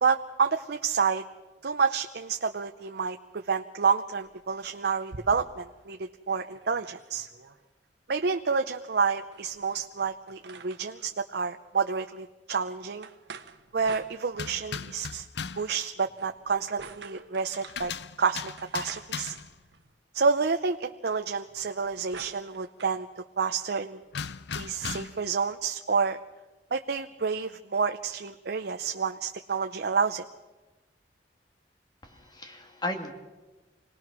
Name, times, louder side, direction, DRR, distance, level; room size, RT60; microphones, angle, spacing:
voice 1, 0.0-1.2 1.6-7.3 8.1-13.1 13.7-15.3 15.6-17.9 18.2-19.3 20.1-23.1 23.4-24.0 24.5-26.2 26.7-30.2, right 5 dB, 65° right, 7 dB, 0.6 m, -29 dB
sound 1, 4.2-5.8 6.2-6.3 6.5-7.6 9.2-11.1 13.0-14.7 16.0-17.8 18.6-20.0 21.4-23.0, right 4 dB, 80° right, 1.2 m, -48 dB
sound 2, 14.3-15.7 17.5-19.6 24.1-25.3, left 6 dB, 70° left, 0.6 m, -38 dB
voice 2, 32.0-33.1, left 1 dB, 25° left, 4 dB, 2.2 m, -35 dB
26.5 x 19.0 x 6.1 m, 1.2 s
head